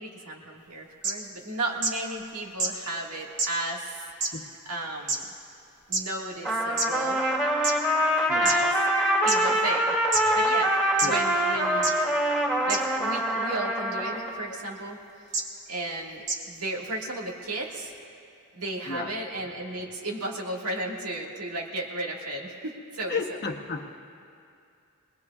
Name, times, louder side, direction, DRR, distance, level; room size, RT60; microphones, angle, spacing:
voice 1, 0.0-4.0 4.7-5.2 5.9-7.3 8.4-8.7 9.2-9.9 10.3-10.7 11.0-11.9 12.7-15.0 15.7-17.9 18.5-23.4, right 2 dB, 80° right, 0 dB, 1.8 m, -34 dB
sound 1, 1.0-1.1 1.8-1.9 2.6-2.7 3.4-3.5 4.2-4.3 5.1-5.2 5.9-6.0 6.8-6.9 7.6-7.7 8.5-8.6 9.3-9.4 10.1-10.2 11.0-11.1 11.8-11.9 12.7-12.8 14.1-14.2 15.3-15.4 16.3-16.4, right 3 dB, 55° right, 1.6 m, -26 dB
Trumpet, 6.4-14.3, right 1 dB, ahead, 2.4 m, -25 dB
voice 2, 18.9-19.3 23.1-23.9, left 4 dB, 45° left, 3 dB, 0.9 m, -34 dB
24.5 x 19.5 x 2.4 m, 2.5 s
head